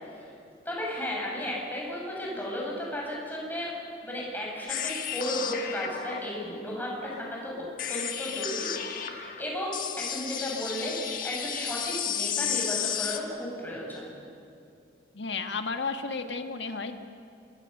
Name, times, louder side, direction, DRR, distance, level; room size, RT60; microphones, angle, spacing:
voice 1, 0.7-3.7 4.0-7.5 7.9-14.1, equal, 10° left, -3 dB, 7.0 m, -34 dB
sound 1, 4.7-13.2, left 9 dB, 50° left, 1.5 m, -33 dB
voice 2, 15.1-17.0, left 4 dB, 70° left, 6 dB, 1.7 m, -33 dB
26.5 x 22.5 x 6.8 m, 2.6 s
head